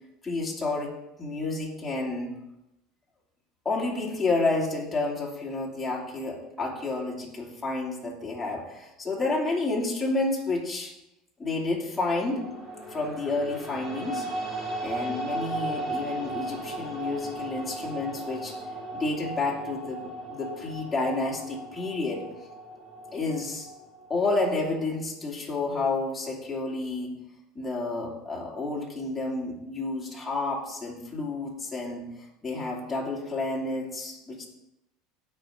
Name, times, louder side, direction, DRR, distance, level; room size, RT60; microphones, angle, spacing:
voice 1, 0.2-0.9 1.2-2.3 3.6-10.9 11.4-12.4 12.9-14.3 14.8-18.6 18.9-22.2 23.1-23.7 24.1-27.2 27.5-34.5, left 3 dB, 10° left, -3 dB, 2.9 m, -30 dB
sound 1, 12.3-24.5, right 1 dB, 25° right, 3.6 m, -36 dB
16.5 x 5.9 x 3.9 m, 0.89 s
supercardioid pair, 130°, 0 cm